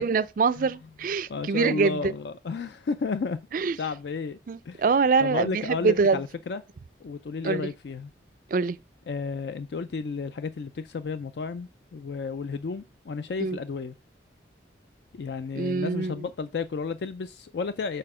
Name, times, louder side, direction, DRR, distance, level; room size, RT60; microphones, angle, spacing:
voice 1, 0.0-2.1 3.5-3.8 4.5-6.2 7.4-7.7 8.5-8.8 13.4-13.6 15.6-16.1, right 4 dB, 45° right, 0.3 m, -24 dB
voice 2, 1.3-3.4 3.8-4.4 4.7-4.8 5.2-6.6 7.0-8.1 9.1-13.9 15.1-18.0, left 4 dB, 60° left, 0.4 m, -32 dB
6.7 x 4.3 x 4.8 m
head